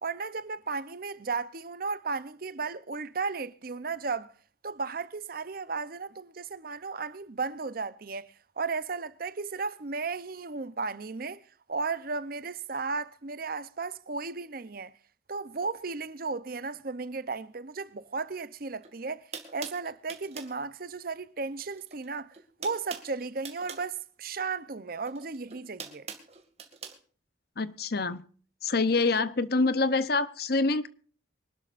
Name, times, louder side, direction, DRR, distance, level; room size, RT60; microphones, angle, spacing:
voice 1, 0.0-4.3 4.6-11.4 11.7-14.9 15.3-22.3 22.6-26.1, right 4 dB, 50° right, 0.7 m, -35 dB
sound 1, 18.8-18.9 19.3-20.6 21.8-22.1 22.3-23.9 25.0-27.0, right 6 dB, 35° right, 2.2 m, -43 dB
voice 2, 27.6-28.2 28.6-30.9, left 3 dB, 55° left, 0.8 m, -26 dB
24.5 x 12.0 x 2.5 m
head